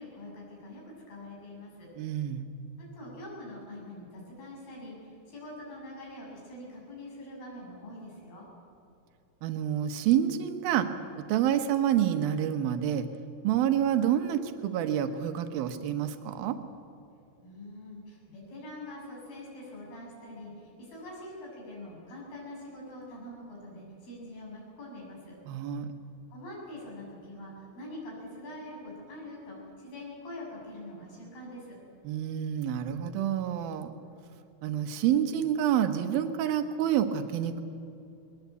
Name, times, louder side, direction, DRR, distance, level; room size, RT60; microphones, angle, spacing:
voice 1, 0.0-1.9 2.8-8.5 17.4-25.4 26.3-31.8, left 1 dB, 65° left, -3 dB, 9.0 m, -44 dB
voice 2, 2.0-2.5 9.4-10.9 11.2-13.1 13.4-16.6 25.5-25.9 32.0-33.9 34.6-37.6, right 10 dB, 70° right, 8 dB, 2.9 m, -28 dB
22.0 x 21.5 x 8.3 m, 2.7 s
omnidirectional pair, 4.6 m